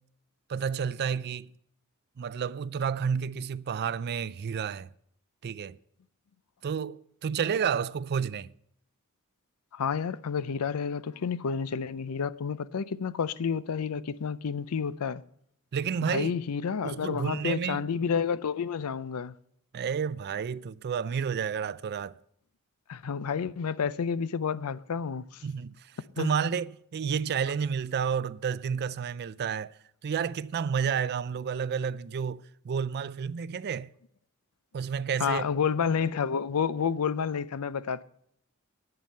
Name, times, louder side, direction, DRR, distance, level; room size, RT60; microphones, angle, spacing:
voice 1, 0.5-1.5 2.2-4.9 5.4-5.8 6.6-8.5 15.7-16.4 16.8-17.8 19.7-22.2 25.4-25.8 26.2-29.8 30.0-33.9 34.7-35.4, right 7 dB, 45° right, 0.3 m, -30 dB
voice 2, 9.7-15.2 16.1-19.3 22.9-25.4 26.2-26.4 35.2-38.0, left 6 dB, 80° left, 0.5 m, -30 dB
10.5 x 8.8 x 5.4 m
head